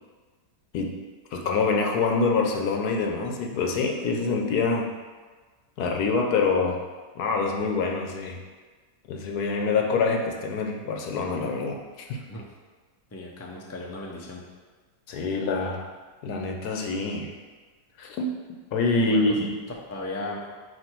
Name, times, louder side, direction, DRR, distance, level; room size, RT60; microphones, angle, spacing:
voice 1, 1.3-4.9 5.8-6.8 7.2-8.4 9.1-12.2 15.1-15.9 16.2-17.3 18.0-18.3 18.7-19.5, left 4 dB, 90° left, 2 dB, 1.3 m, -25 dB
voice 2, 13.1-14.4 19.0-19.4 19.9-20.4, left 1 dB, 25° left, -1 dB, 0.3 m, -36 dB
7.8 x 2.7 x 4.5 m, 1.4 s
omnidirectional pair, 1.6 m